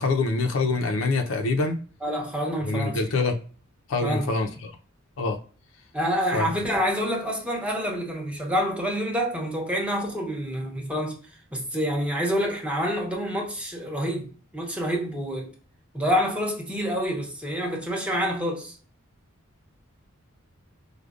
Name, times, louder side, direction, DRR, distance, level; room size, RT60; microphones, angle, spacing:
voice 1, 0.0-1.8 2.7-3.4 3.9-4.7 5.2-5.4 6.3-6.5, left 3 dB, 65° left, 0.5 m, -25 dB
voice 2, 2.0-3.0 4.0-4.3 5.9-11.2 11.5-15.5 15.9-18.8, equal, 5° right, 0.7 m, -27 dB
4.9 x 2.2 x 2.4 m
head